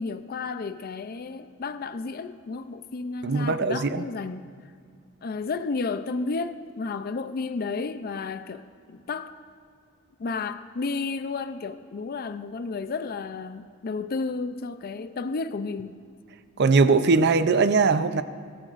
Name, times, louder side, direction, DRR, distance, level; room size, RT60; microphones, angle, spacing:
voice 1, 0.0-4.5 5.2-9.3 10.2-16.0, left 4 dB, 45° left, 0.4 m, -32 dB
voice 2, 3.2-4.1 16.6-18.2, right 4 dB, 55° right, 0.6 m, -20 dB
24.5 x 13.5 x 2.5 m
head